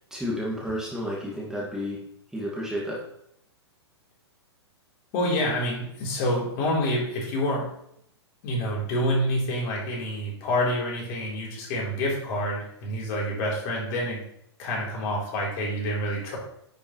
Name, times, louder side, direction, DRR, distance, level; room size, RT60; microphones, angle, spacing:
voice 1, 0.0-2.0 2.3-3.0, equal, 5° right, -5 dB, 2.3 m, -31 dB
voice 2, 5.1-7.7 8.4-14.2 14.6-16.4, left 1 dB, 40° left, -3 dB, 4.0 m, -27 dB
10.5 x 6.8 x 3.3 m, 0.74 s
figure-of-eight pair, 110°, 14 cm